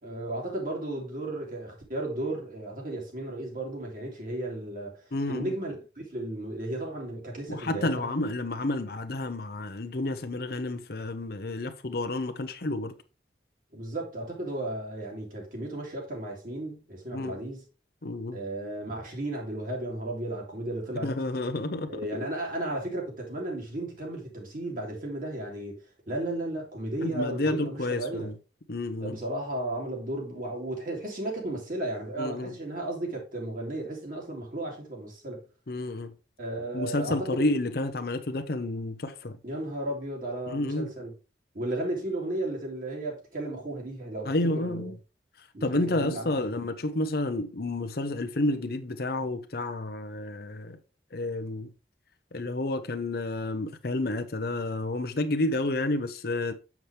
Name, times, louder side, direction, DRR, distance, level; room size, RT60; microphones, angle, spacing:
voice 1, 0.0-4.9 5.3-8.1 13.7-17.6 18.3-21.1 21.9-25.7 26.1-28.3 29.0-35.4 36.4-37.3 39.4-41.1 41.5-44.8 45.5-46.3, right 1 dB, 50° right, 2.6 m, -34 dB
voice 2, 5.1-5.5 7.5-12.9 17.1-17.4 18.0-18.4 21.0-22.0 27.0-28.3 28.7-29.2 32.2-32.5 35.7-36.1 36.7-39.4 40.5-40.9 44.2-45.0 45.6-50.8 51.1-51.7 52.3-56.5, left 2 dB, 55° left, 0.8 m, -30 dB
7.1 x 5.9 x 3.3 m
head